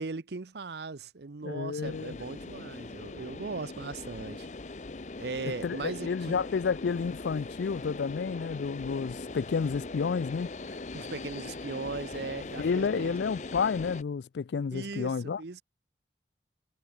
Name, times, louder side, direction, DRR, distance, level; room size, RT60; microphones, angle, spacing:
voice 1, 0.0-4.5 5.2-6.5 10.7-13.2 14.7-15.6, right 3 dB, 65° right, 0.7 m, -38 dB
voice 2, 1.4-2.2 5.6-10.5 12.6-15.4, left 5 dB, 70° left, 0.4 m, -30 dB
sound 1, 1.8-14.0, left 3 dB, 40° left, 0.7 m, -41 dB
head